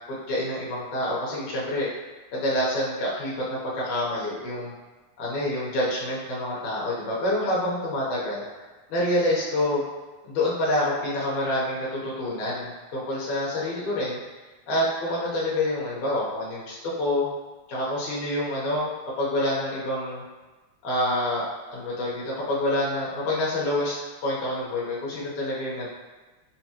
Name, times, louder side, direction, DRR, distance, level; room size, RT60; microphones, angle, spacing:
voice 1, 0.1-1.9 2.3-4.7 5.2-8.6 8.9-9.8 10.2-14.2 14.7-17.3 17.7-18.9 19.2-20.2 20.8-21.4 21.7-24.0 24.2-25.9, left 1 dB, 85° left, -7 dB, 2.4 m, -27 dB
5.1 x 3.5 x 2.9 m, 1.2 s
omnidirectional pair, 3.3 m